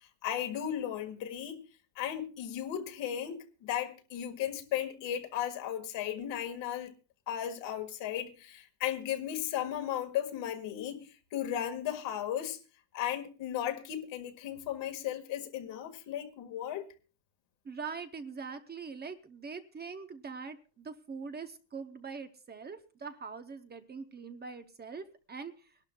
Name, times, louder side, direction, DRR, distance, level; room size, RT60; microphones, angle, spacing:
voice 1, 0.2-1.6 1.9-6.9 7.3-11.0 11.3-12.6 12.9-16.9, left 10 dB, 75° left, 1.8 m, -35 dB
voice 2, 17.6-25.7, right 5 dB, 25° right, 0.7 m, -43 dB
25.0 x 12.0 x 2.2 m
cardioid pair, 155°, 44 cm